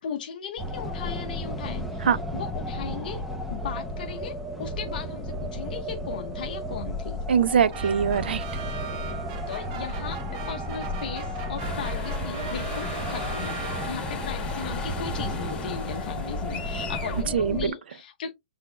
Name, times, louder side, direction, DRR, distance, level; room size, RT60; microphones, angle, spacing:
voice 1, 0.0-2.1 2.3-3.2 3.5-7.2 9.5-18.3, left 7 dB, 55° left, 0.7 m, -37 dB
sound 1, 0.6-17.7, equal, ahead, 0.6 m, -33 dB
voice 2, 7.3-8.6 17.3-17.7, right 7 dB, 80° right, 0.5 m, -23 dB
sound 2, 7.7-14.3, right 5 dB, 35° right, 0.9 m, -39 dB
sound 3, 11.6-17.2, left 5 dB, 15° left, 1.7 m, -37 dB
5.9 x 3.5 x 2.2 m
hypercardioid pair, 160°, 6 cm